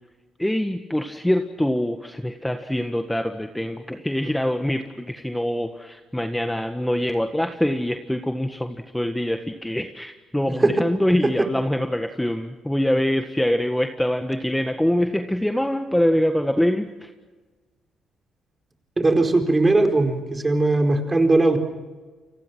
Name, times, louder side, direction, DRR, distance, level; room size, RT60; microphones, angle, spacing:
voice 1, 0.4-17.1, left 1 dB, 5° left, 6 dB, 1.6 m, -24 dB
voice 2, 19.0-21.6, right 2 dB, 20° right, 5 dB, 4.6 m, -19 dB
30.0 x 24.0 x 6.1 m, 1.3 s
cardioid pair, 90°, 0 cm